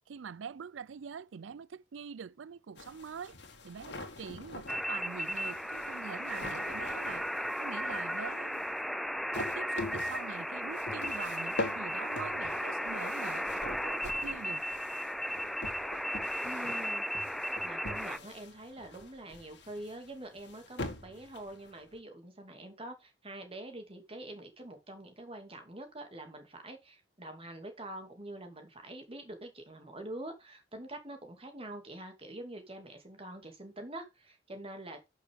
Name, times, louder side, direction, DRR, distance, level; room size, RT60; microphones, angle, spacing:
voice 1, 0.1-3.4 3.6-7.3 7.6-8.6 9.4-14.6, right 6 dB, 80° right, 0.4 m, -44 dB
sound 1, 2.8-22.0, left 2 dB, 60° left, 2.2 m, -45 dB
sound 2, 4.7-18.2, equal, ahead, 0.5 m, -35 dB
voice 2, 16.4-17.3 17.6-35.1, right 1 dB, 30° right, 2.5 m, -45 dB
11.5 x 6.3 x 3.7 m
head